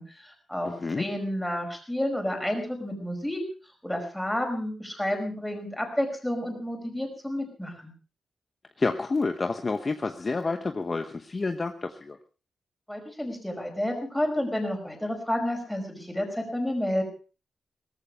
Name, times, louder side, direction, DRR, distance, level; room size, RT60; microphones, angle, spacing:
voice 1, 0.0-3.4 3.8-7.9 12.9-17.0, left 1 dB, 5° left, 3 dB, 5.2 m, -30 dB
voice 2, 0.6-1.1 8.8-12.2, left 3 dB, 30° left, 7 dB, 1.0 m, -29 dB
18.0 x 14.5 x 4.9 m, 0.36 s
wide cardioid pair, 130°, 0 cm